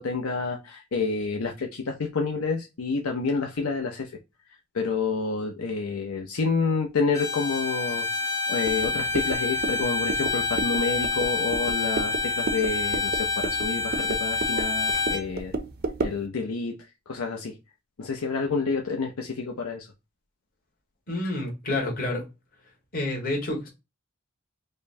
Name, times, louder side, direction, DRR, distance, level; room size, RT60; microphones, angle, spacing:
voice 1, 0.0-4.1 4.7-15.5 16.0-16.7 17.1-17.6 18.0-19.9, left 4 dB, 75° left, 0.6 m, -29 dB
Bowed string instrument, 7.1-15.3, left 4 dB, 15° left, 0.4 m, -27 dB
sound 1, 8.7-16.3, right 3 dB, 45° right, 0.5 m, -33 dB
voice 2, 21.1-22.2 22.9-23.7, left 2 dB, 40° left, 1.5 m, -28 dB
5.1 x 2.2 x 2.6 m
head